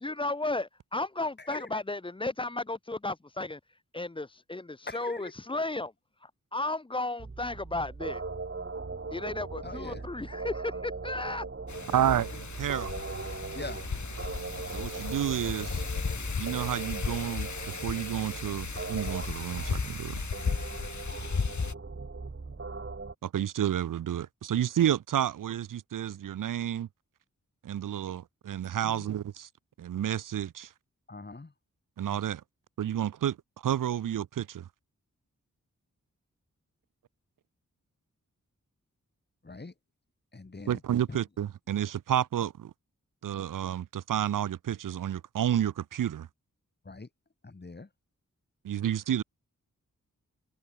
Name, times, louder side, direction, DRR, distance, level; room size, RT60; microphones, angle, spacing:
voice 1, 0.0-3.6 3.9-5.9 6.2-8.2 9.1-11.4, left 2 dB, 15° left, 0.7 m, -34 dB
voice 2, 1.4-1.8 4.9-5.3 9.6-10.0 13.5-13.8 28.9-29.2 31.1-31.5 39.4-39.7 40.3-40.8 41.1-41.2 46.9-47.1 47.4-47.9, left 3 dB, 30° left, 2.0 m, -42 dB
sound 1, 7.2-23.1, right 3 dB, 40° right, 2.8 m, -39 dB
Wind, 11.7-21.7, left 5 dB, 65° left, 2.3 m, -35 dB
voice 3, 11.9-12.3 12.6-12.9 14.7-15.8 16.4-20.2 23.2-26.9 27.6-29.5 29.8-30.7 32.0-32.4 32.8-33.4 33.6-34.7 40.7-42.7 43.2-46.3 48.6-49.2, right 10 dB, 80° right, 0.5 m, -30 dB
wide cardioid pair, 90°, 32 cm